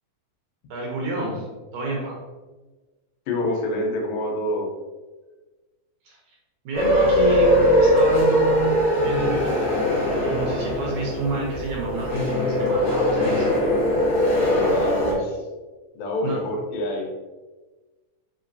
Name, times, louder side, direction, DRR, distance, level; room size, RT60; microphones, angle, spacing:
voice 1, 0.7-1.5 1.7-2.2 6.1-6.2 6.7-9.8 10.2-13.5 16.2-16.4, right 2 dB, 75° right, -3 dB, 2.0 m, -29 dB
voice 2, 3.3-4.7 14.5-15.4 15.9-17.1, left 1 dB, 90° left, 0 dB, 2.6 m, -27 dB
sound 1, 6.7-15.1, equal, 75° left, 1.1 m, -21 dB
5.8 x 3.1 x 2.6 m, 1.2 s
omnidirectional pair, 4.1 m